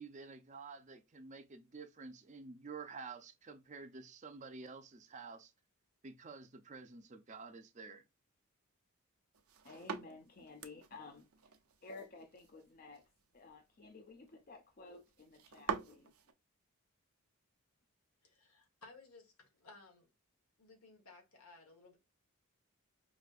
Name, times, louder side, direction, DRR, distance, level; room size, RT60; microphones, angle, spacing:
voice 1, 0.0-5.5 6.0-8.1, right 4 dB, 35° right, 0.5 m, -50 dB
sound 1, 9.3-16.3, right 6 dB, 75° right, 0.6 m, -47 dB
voice 2, 9.6-11.3 11.8-13.1 13.3-16.1, left 3 dB, 40° left, 0.5 m, -53 dB
voice 3, 18.2-20.1 20.6-22.0, left 3 dB, 80° left, 1.4 m, -59 dB
4.8 x 2.7 x 2.5 m
head